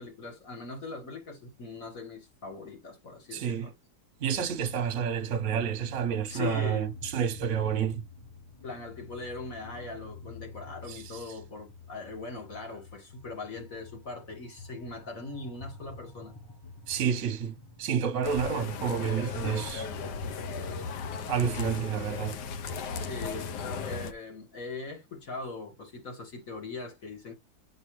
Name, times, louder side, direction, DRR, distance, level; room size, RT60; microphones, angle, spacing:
voice 1, 0.0-3.7 6.3-6.9 8.6-16.3 22.9-23.6 23.8-27.3, left 3 dB, 50° left, 2.2 m, -41 dB
voice 2, 3.3-3.7 4.2-8.0 10.9-11.2 16.9-17.5 17.8-19.9 21.3-22.3, right 8 dB, 55° right, 1.0 m, -29 dB
sound 1, 4.3-23.8, left 4 dB, 20° left, 0.7 m, -48 dB
sound 2, 18.2-24.1, left 5 dB, 75° left, 1.4 m, -36 dB
8.0 x 4.8 x 3.2 m
omnidirectional pair, 1.8 m